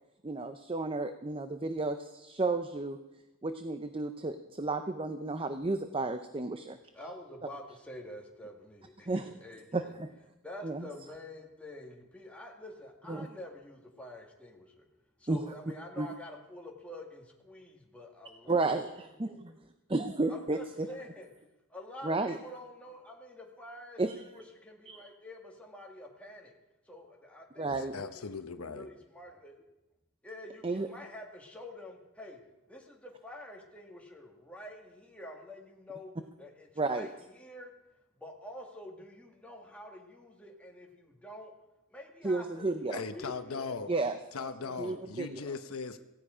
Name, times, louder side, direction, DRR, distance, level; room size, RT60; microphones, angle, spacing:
voice 1, 0.2-3.0 3.4-6.8 9.1-9.3 9.7-10.1 10.6-10.9 13.1-13.3 15.3-15.4 16.0-16.1 18.5-18.9 19.2-19.3 19.9-20.9 22.0-22.4 24.0-24.2 24.9-25.0 27.6-27.9 30.6-30.9 36.8-37.1 42.2-43.0 43.9-44.2 44.8-45.4, right 3 dB, 25° right, 9 dB, 0.6 m, -32 dB
voice 2, 6.9-9.9 10.4-14.9 15.2-18.8 19.3-19.4 20.3-21.3 21.7-26.5 26.9-28.3 28.7-29.5 30.2-32.4 32.7-36.1 36.4-37.7 38.2-41.5 41.9-44.1 44.4-45.6, left 1 dB, 5° left, 0 dB, 1.8 m, -48 dB
voice 3, 27.7-28.9 42.9-43.9 44.3-46.0, left 4 dB, 85° left, 8 dB, 1.0 m, -39 dB
17.0 x 16.0 x 5.0 m, 0.98 s
head